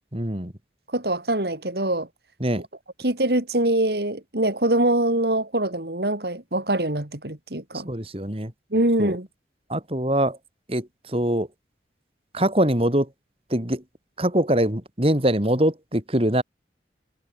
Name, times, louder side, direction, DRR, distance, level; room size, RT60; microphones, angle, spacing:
voice 1, 0.1-0.5 2.4-2.6 7.9-8.5 9.0-9.2 9.7-10.4 10.7-11.5 12.3-13.1 13.5-13.8 14.2-16.4, right 1 dB, 35° right, 3.5 m, -23 dB
voice 2, 0.9-2.1 2.6-2.7 3.0-7.9 8.7-9.3, right 1 dB, 65° right, 3.2 m, -24 dB
head